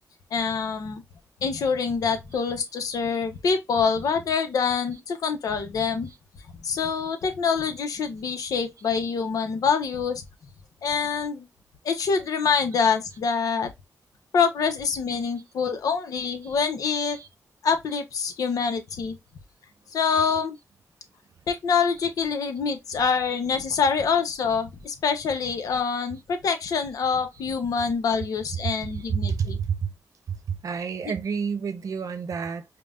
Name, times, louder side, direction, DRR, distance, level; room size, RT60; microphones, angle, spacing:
voice 1, 0.3-1.0 1.4-6.1 6.6-10.2 10.8-11.5 11.8-13.7 14.3-17.2 17.6-19.2 19.9-20.6 21.5-29.6, left 5 dB, 85° left, 0.8 m, -25 dB
voice 2, 28.6-29.9 30.3-32.6, right 6 dB, 70° right, 0.7 m, -30 dB
5.2 x 2.3 x 2.4 m
cardioid pair, 75°, 6 cm